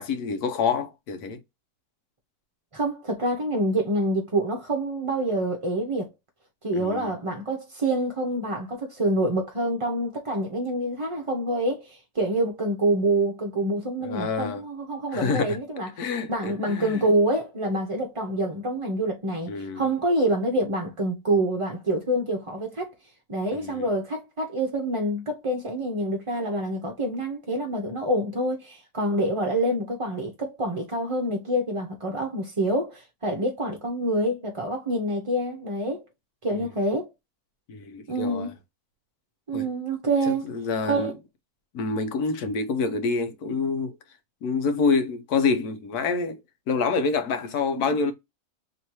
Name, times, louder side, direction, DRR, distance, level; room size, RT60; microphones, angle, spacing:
voice 1, 0.0-1.4 6.7-7.1 14.0-14.6 15.1-15.6 16.0-17.0 19.5-19.8 23.5-23.9 36.5-36.6 37.7-38.5 39.5-39.7 40.3-41.1 41.7-43.9 44.4-46.4 46.7-48.1, left 4 dB, 85° left, 1.3 m, -27 dB
voice 2, 2.7-6.1 6.6-22.9 23.3-36.0 36.4-37.1 38.1-38.5 39.5-40.4 40.9-41.1 47.9-48.0, right 1 dB, 30° right, 0.6 m, -26 dB
3.2 x 2.8 x 4.5 m
omnidirectional pair, 1.6 m